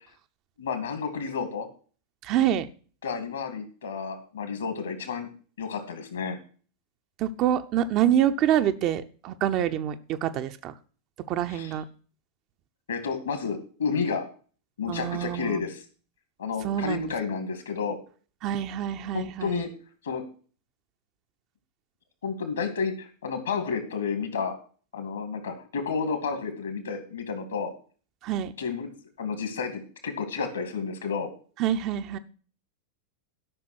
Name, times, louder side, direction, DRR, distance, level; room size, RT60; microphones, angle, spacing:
voice 1, 0.6-1.7 3.0-5.3 5.6-6.4 11.5-11.7 12.9-14.2 14.8-15.8 16.4-18.0 19.1-19.7 20.0-20.2 22.2-24.5 24.9-27.7 28.6-28.9 29.2-31.3, left 5 dB, 70° left, 8 dB, 2.4 m, -31 dB
voice 2, 2.2-2.7 7.2-10.7 11.3-11.8 14.9-15.7 16.6-17.1 18.4-19.7 28.2-28.5 31.6-32.2, right 10 dB, 40° right, 9 dB, 0.8 m, -26 dB
12.5 x 6.0 x 6.1 m, 0.41 s
figure-of-eight pair, 90°, 0 cm